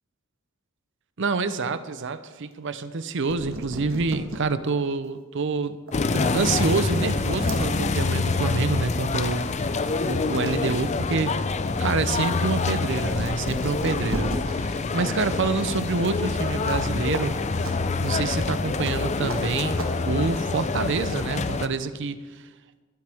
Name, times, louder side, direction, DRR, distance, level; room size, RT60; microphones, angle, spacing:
voice 1, 1.2-5.8 6.1-9.7 10.0-11.3 11.8-17.4 18.0-19.8 20.1-22.2, right 4 dB, 60° right, 12 dB, 0.6 m, -27 dB
sound 1, 3.0-3.1 3.3-4.4 4.9-5.0 5.9-6.0 6.3-7.6 8.9-9.1 9.5-10.5 10.9-14.4 16.6-16.9 17.1-17.2 17.6-17.7 18.8-18.9 19.3-19.4 19.7-19.9, right 2 dB, 90° right, 1.6 m, -35 dB
sound 2, 5.9-21.7, left 3 dB, 35° left, 0.5 m, -26 dB
21.5 x 8.0 x 3.5 m, 1.3 s
head